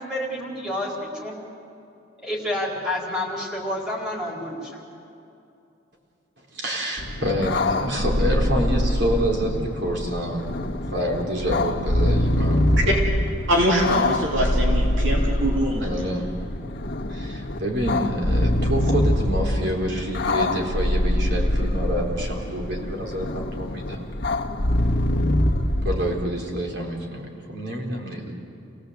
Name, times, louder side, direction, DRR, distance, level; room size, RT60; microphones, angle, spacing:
voice 1, 0.0-1.4 2.2-4.9, left 1 dB, 5° right, -2 dB, 4.3 m, -29 dB
voice 2, 6.4-10.6 10.9-13.1 15.8-16.3 17.1-24.2 25.8-28.3, equal, 60° right, 0 dB, 3.9 m, -27 dB
sound 1, 7.0-26.3, left 1 dB, 55° left, 1.4 m, -24 dB
voice 3, 13.5-15.9, equal, 75° right, -1 dB, 3.1 m, -23 dB
28.5 x 17.0 x 8.1 m, 2.7 s
head